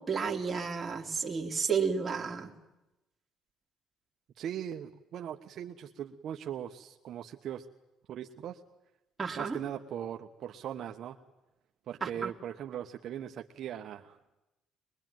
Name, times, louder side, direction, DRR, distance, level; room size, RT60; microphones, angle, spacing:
voice 1, 0.0-2.5 9.2-9.6 12.0-12.3, right 5 dB, 20° right, 1 dB, 3.0 m, -32 dB
voice 2, 4.4-7.6 8.1-8.6 9.3-11.2 11.9-14.2, right 10 dB, 55° right, 4 dB, 1.2 m, -40 dB
23.5 x 22.5 x 9.3 m, 0.96 s
cardioid pair, 130°, 0 cm